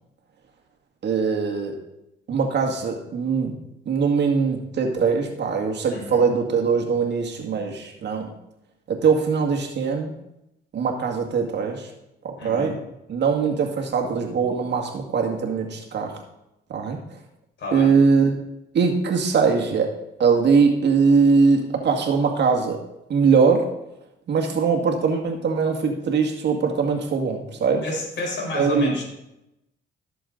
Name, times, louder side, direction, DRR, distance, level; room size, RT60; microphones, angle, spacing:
voice 1, 1.0-1.8 2.3-3.6 3.9-8.3 8.9-10.1 10.7-11.9 12.2-12.8 13.1-16.2 16.7-17.0 17.7-18.3 18.7-19.9 20.2-22.8 23.1-23.7 24.3-27.9 28.5-29.0, right 5 dB, 60° right, 2 dB, 2.0 m, -21 dB
voice 2, 5.9-6.3 12.4-12.7 17.6-17.9 27.8-29.0, left 2 dB, 65° left, -2 dB, 4.7 m, -30 dB
15.0 x 6.9 x 4.0 m, 0.87 s
cardioid pair, 90°, 20 cm